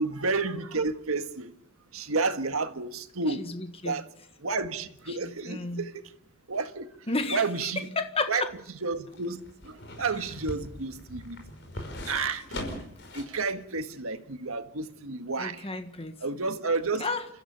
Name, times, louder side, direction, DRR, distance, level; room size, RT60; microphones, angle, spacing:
voice 1, 0.0-1.5 1.9-3.4 3.8-4.0 4.4-5.9 6.5-6.8 7.3-7.9 8.3-8.4 8.8-9.4 9.6-11.4 12.1-12.6 13.1-15.6 16.2-17.1, right 4 dB, 85° right, 1.6 m, -30 dB
voice 2, 3.3-4.0 5.1-5.9 7.1-8.5 15.4-16.2 16.5-16.6 17.0-17.3, left 3 dB, 30° left, 1.5 m, -32 dB
sound 1, 8.3-13.4 13.8-13.9, left 1 dB, 55° left, 5.5 m, -40 dB
30.0 x 14.5 x 7.0 m
head